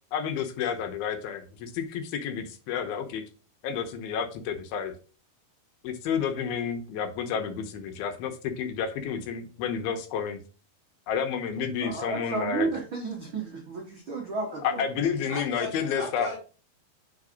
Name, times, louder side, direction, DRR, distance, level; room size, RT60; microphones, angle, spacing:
voice 1, 0.1-3.2 3.6-4.9 5.8-10.4 11.1-12.7 14.6-16.3, left 7 dB, 80° left, 6 dB, 2.7 m, -30 dB
voice 2, 11.8-14.8, right 3 dB, 85° right, -1 dB, 1.1 m, -32 dB
voice 3, 14.5-14.8 15.3-16.4, left 1 dB, 20° right, -3 dB, 1.8 m, -37 dB
4.8 x 4.8 x 5.1 m, 0.36 s
omnidirectional pair, 4.4 m